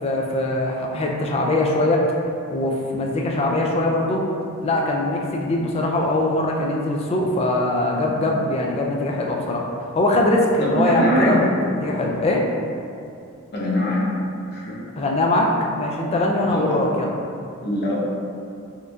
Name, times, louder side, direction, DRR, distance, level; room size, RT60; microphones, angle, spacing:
voice 1, 0.0-2.1 2.5-4.2 4.6-9.7 10.0-11.5 11.8-12.5 15.0-15.5 15.8-17.1, left 1 dB, 25° left, -1 dB, 0.3 m, -21 dB
voice 2, 10.6-11.5 13.5-14.1 14.5-14.8 16.4-16.8 17.6-18.0, equal, 45° left, -6 dB, 0.7 m, -22 dB
4.3 x 2.5 x 2.3 m, 2.4 s
head